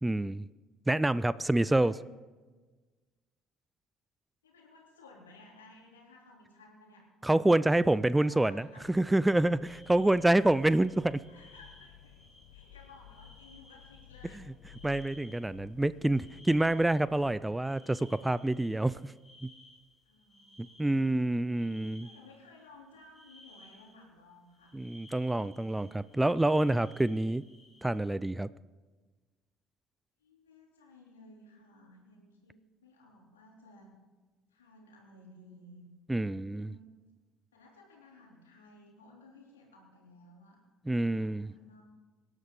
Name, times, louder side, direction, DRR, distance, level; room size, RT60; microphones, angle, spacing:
voice 1, 0.0-0.5 0.9-1.9 7.2-11.2 14.8-19.1 19.4-19.5 20.6-22.1 24.7-27.4 27.8-28.5 36.1-36.7 40.9-41.5, right 1 dB, 10° right, 18 dB, 0.4 m, -27 dB
voice 2, 1.3-2.1 4.4-7.1 7.5-9.3 10.0-10.5 11.3-12.2 12.5-14.5 20.0-21.5 21.8-24.7 30.2-32.5 32.8-33.9 34.5-36.9 37.5-40.6 40.9-41.8, left 2 dB, 80° left, -1 dB, 3.3 m, -57 dB
sound 1, 8.8-17.4, left 12 dB, 65° left, 0.9 m, -55 dB
sound 2, 9.6-17.2 17.4-24.0 24.5-28.0, left 1 dB, 20° left, 4.8 m, -59 dB
25.0 x 11.0 x 3.8 m, 1.3 s
figure-of-eight pair, 55°, 0 cm